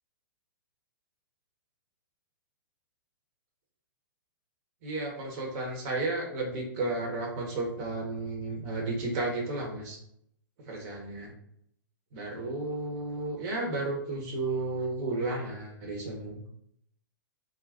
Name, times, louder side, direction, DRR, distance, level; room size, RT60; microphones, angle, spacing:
voice 1, 4.8-10.0 10.7-11.3 12.1-16.5, right 2 dB, 45° right, 0 dB, 1.0 m, -33 dB
2.4 x 2.1 x 3.4 m, 0.71 s
hypercardioid pair, 130°, 11 cm